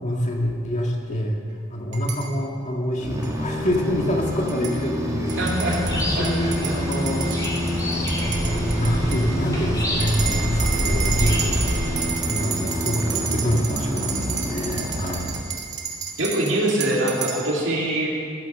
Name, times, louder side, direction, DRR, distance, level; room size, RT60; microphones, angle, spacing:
voice 1, 0.0-1.4 1.7-5.4 5.9-7.3 8.2-11.6 11.9-12.0 12.3-15.3, equal, 40° left, 0 dB, 1.7 m, -26 dB
sound 1, 1.9-2.3 3.2-3.3 4.3-4.8 5.3-9.3 10.0-17.4, right 7 dB, 35° right, 1.7 m, -31 dB
sound 2, 3.0-15.8, equal, 15° right, 1.5 m, -28 dB
sound 3, 5.3-12.1, equal, 20° left, 2.5 m, -27 dB
voice 2, 5.4-6.8 7.3-7.5 16.2-18.1, right 1 dB, 70° right, -4 dB, 2.7 m, -24 dB
15.5 x 7.6 x 6.6 m, 2.4 s
head